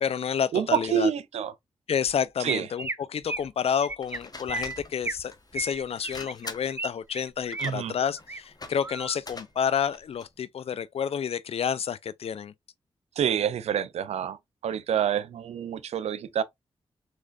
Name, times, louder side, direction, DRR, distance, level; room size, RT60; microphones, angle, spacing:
voice 1, 0.0-1.1 1.9-12.5, left 8 dB, 65° left, 0.4 m, -29 dB
voice 2, 0.5-1.5 2.4-2.7 7.6-7.9 13.2-16.4, right 9 dB, 80° right, 0.4 m, -27 dB
Chirp tweet, 2.1-2.2 2.5-3.0 3.3-3.5 3.8-4.2 4.5-5.2 5.5-6.9 7.1-7.7 8.1-8.4 8.8-9.2, right 3 dB, 20° right, 0.4 m, -34 dB
sound 1, 4.0-10.4, left 3 dB, 35° left, 0.9 m, -45 dB
3.7 x 3.2 x 2.4 m
cardioid pair, 50°, 11 cm